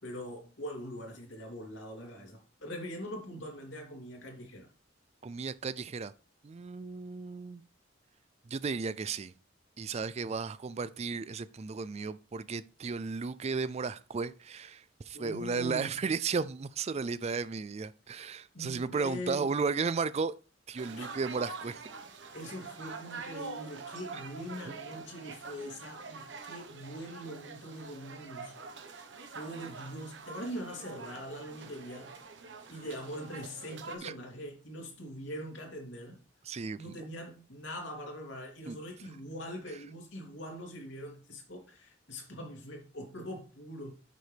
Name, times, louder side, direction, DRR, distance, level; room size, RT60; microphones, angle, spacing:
voice 1, 0.0-4.7 15.1-16.0 18.5-19.5 21.0-21.1 22.3-28.5 28.9-29.0 29.3-32.2 32.7-36.2 36.8-43.9, equal, 70° left, 2.9 m, -42 dB
voice 2, 5.2-6.1 6.4-7.6 8.5-9.3 9.8-20.3 20.7-21.8 34.0-34.1 36.5-36.8 38.7-38.8, right 5 dB, 35° right, 0.4 m, -34 dB
sound 1, 20.8-34.0, right 4 dB, 65° right, 1.2 m, -45 dB
9.3 x 6.5 x 3.4 m
head